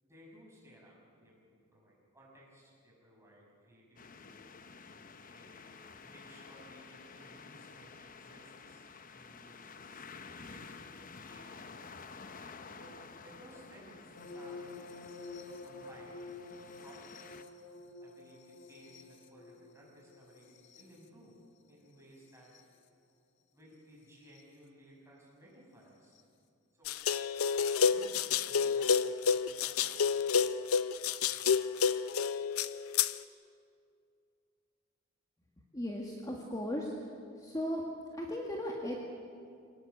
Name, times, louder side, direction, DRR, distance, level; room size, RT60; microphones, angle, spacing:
voice 1, 0.0-4.5 5.3-10.0 10.4-11.5 12.7-14.7 15.6-16.3 16.8-17.4 18.0-21.4 21.7-22.5 23.5-26.2 26.7-27.0 27.9-30.0, equal, 15° right, -3 dB, 6.4 m, -58 dB
sound 1, 4.0-17.4, left 4 dB, 40° left, 0.9 m, -51 dB
sound 2, 14.2-22.8 24.2-24.4 26.1-26.2, left 3 dB, 55° left, 1.5 m, -50 dB
sound 3, 26.9-33.1, left 6 dB, 75° left, 0.6 m, -29 dB
voice 2, 35.7-36.9 37.4-37.8 38.1-39.0, left 1 dB, 15° left, -1 dB, 1.8 m, -36 dB
24.5 x 19.0 x 8.0 m, 2.4 s
head